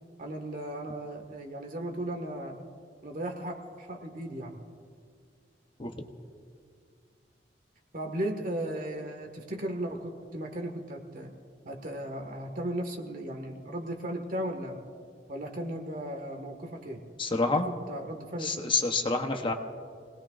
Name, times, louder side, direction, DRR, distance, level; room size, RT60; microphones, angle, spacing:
voice 1, 0.2-2.6 3.0-4.6 7.9-11.3 11.7-14.8 15.3-17.0 17.6-18.5, right 1 dB, 50° right, 4 dB, 1.8 m, -36 dB
voice 2, 17.2-17.7 18.4-19.5, left 3 dB, 30° left, 4 dB, 1.0 m, -27 dB
29.0 x 19.0 x 2.5 m, 2.2 s
head